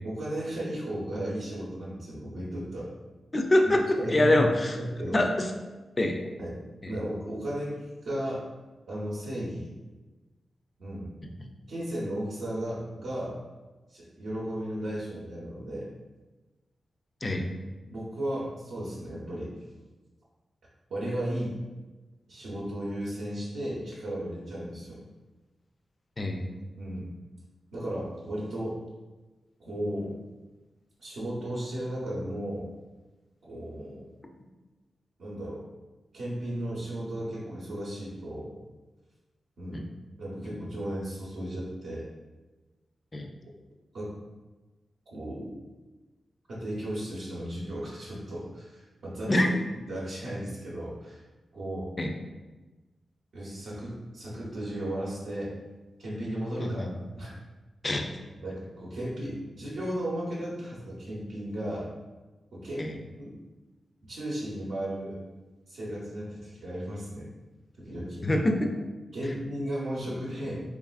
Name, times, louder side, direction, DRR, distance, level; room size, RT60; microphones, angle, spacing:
voice 1, 0.0-2.9 3.9-4.4 4.7-5.2 6.4-6.6 6.9-8.4 8.9-9.7 10.8-11.1 11.7-13.4 13.9-15.9 17.8-19.5 20.9-21.6 22.3-25.0 26.8-27.1 27.7-28.8 29.6-30.2 31.0-32.7 33.4-34.1 35.2-35.7 36.1-38.6 39.6-39.9 40.2-42.1 43.9-44.1 45.1-45.5 46.5-49.5 49.9-51.2 51.5-51.9 53.3-55.5 56.0-56.8 57.2-57.3 58.4-61.9 62.5-62.9 63.2-63.4 64.0-65.2 65.7-67.3 67.8-68.3 69.1-70.6, right 1 dB, 85° right, -7 dB, 0.6 m, -35 dB
voice 2, 3.3-3.8 4.1-4.8 5.1-5.5 6.0-6.2 6.8-6.9 17.2-17.5 26.2-26.4 39.7-39.8 43.1-43.3 49.3-49.5 52.0-52.1 56.6-56.9 57.8-58.1 62.8-62.9 68.2-68.7, left 1 dB, 30° left, 4 dB, 0.3 m, -24 dB
3.1 x 2.4 x 2.3 m, 1.2 s
wide cardioid pair, 95°, 0 cm